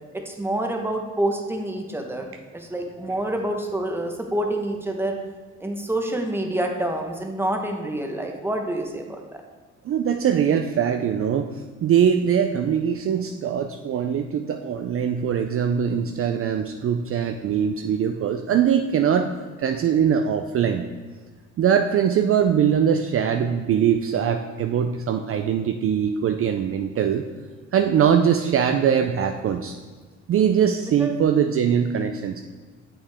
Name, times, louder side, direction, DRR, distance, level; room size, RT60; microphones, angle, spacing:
voice 1, 0.1-2.3 2.5-5.2 5.6-9.4 30.8-31.1, right 1 dB, 10° right, 3 dB, 1.0 m, -27 dB
voice 2, 9.8-11.5 11.8-19.3 19.6-20.8 21.6-27.2 27.7-29.7 30.3-32.4, right 8 dB, 50° right, 6 dB, 0.4 m, -22 dB
7.3 x 5.5 x 3.4 m, 1.4 s
cardioid pair, 90°, 30 cm